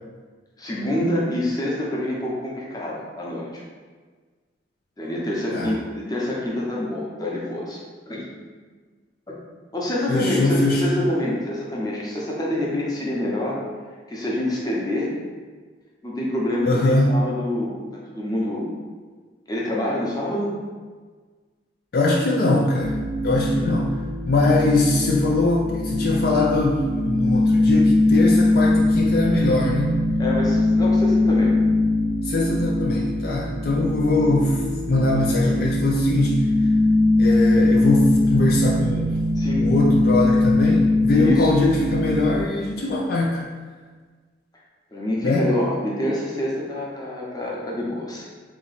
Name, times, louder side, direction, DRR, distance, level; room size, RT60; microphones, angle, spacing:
voice 1, 0.6-3.6 5.0-7.8 8.1-8.2 9.7-13.6 14.1-15.1 16.0-18.7 19.5-20.5 30.2-31.6 35.4-35.5 39.4-39.7 41.1-41.6 44.9-48.3, left 1 dB, 20° left, -4 dB, 0.8 m, -26 dB
voice 2, 10.1-11.0 16.7-17.2 21.9-22.9 23.2-24.0 24.3-30.0 32.2-36.5 37.2-39.2 39.6-43.4 45.2-45.5, left 2 dB, 55° left, -2 dB, 0.4 m, -21 dB
sound 1, 22.8-42.4, left 2 dB, 15° right, 0.5 m, -21 dB
3.7 x 3.0 x 4.1 m, 1.5 s
head